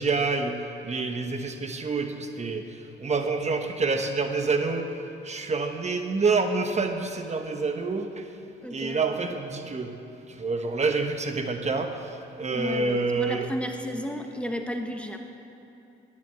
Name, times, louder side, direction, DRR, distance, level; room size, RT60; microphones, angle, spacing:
voice 1, 0.0-5.0 5.2-8.3 8.7-9.9 10.3-13.5, right 4 dB, 35° right, 5 dB, 1.1 m, -27 dB
voice 2, 8.6-9.0 12.5-15.2, equal, 5° left, 4 dB, 1.1 m, -33 dB
12.0 x 11.0 x 7.8 m, 2.9 s
cardioid pair, 90°, 20 cm